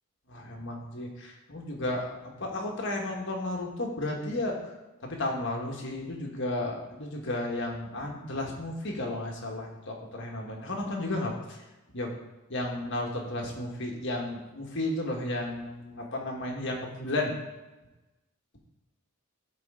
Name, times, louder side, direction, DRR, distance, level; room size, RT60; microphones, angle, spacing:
voice 1, 0.3-4.6 5.0-11.7 11.9-12.1 12.5-17.3, left 1 dB, 60° left, 0 dB, 1.6 m, -33 dB
12.5 x 4.5 x 3.8 m, 1.1 s
head